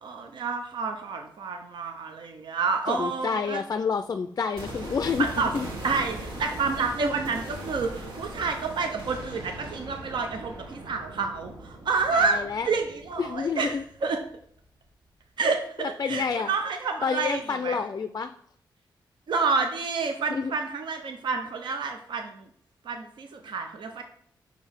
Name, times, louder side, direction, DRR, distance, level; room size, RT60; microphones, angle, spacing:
voice 1, 0.0-3.6 5.4-5.5 5.8-13.8 14.0-14.2 15.4-15.6 16.1-17.8 19.3-22.4 22.8-24.0, right 4 dB, 70° right, 5 dB, 0.7 m, -29 dB
voice 2, 2.9-5.7 12.1-12.7 13.2-13.8 15.8-16.5 17.0-18.3 20.3-20.5, left 5 dB, 40° left, 9 dB, 0.4 m, -29 dB
sound 1, 4.6-14.6 14.9-15.0, right 1 dB, 85° right, 1.9 m, -40 dB
6.0 x 4.5 x 3.5 m, 0.64 s
wide cardioid pair, 110°, 8 cm